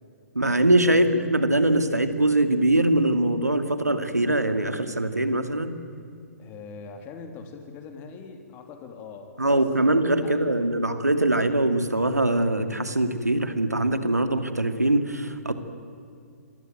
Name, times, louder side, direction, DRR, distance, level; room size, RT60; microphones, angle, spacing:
voice 1, 0.3-5.8 9.4-15.5, right 1 dB, 85° right, 9 dB, 2.4 m, -22 dB
voice 2, 6.4-10.0 10.2-10.6, left 5 dB, 25° left, 5 dB, 2.9 m, -41 dB
27.0 x 23.5 x 9.3 m, 2.3 s
figure-of-eight pair, 125°, 9 cm